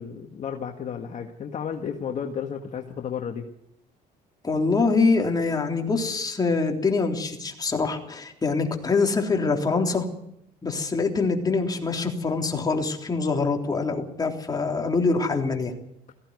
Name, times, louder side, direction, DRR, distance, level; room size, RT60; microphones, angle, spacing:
voice 1, 0.0-3.5, left 7 dB, 45° left, 3 dB, 1.8 m, -33 dB
voice 2, 4.4-10.1 10.6-15.7, left 4 dB, 25° left, 1 dB, 3.6 m, -24 dB
18.0 x 15.5 x 9.6 m, 0.79 s
cardioid pair, 110°, 17 cm